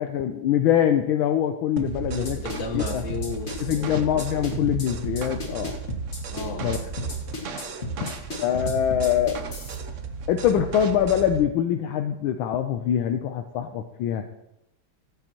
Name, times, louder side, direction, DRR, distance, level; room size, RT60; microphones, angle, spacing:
voice 1, 0.0-2.4 2.7-3.0 3.6-5.7 6.6-6.8 8.0-8.1 8.4-9.4 10.3-14.2, left 10 dB, 75° left, 6 dB, 1.4 m, -24 dB
sound 1, 1.8-11.5, right 5 dB, 80° right, 0.6 m, -35 dB
sound 2, 2.0-9.8, equal, 30° left, 1.9 m, -32 dB
voice 2, 2.1-4.1 6.3-6.8, left 5 dB, 50° left, 2 dB, 1.7 m, -34 dB
14.0 x 8.9 x 3.0 m, 0.85 s
omnidirectional pair, 2.4 m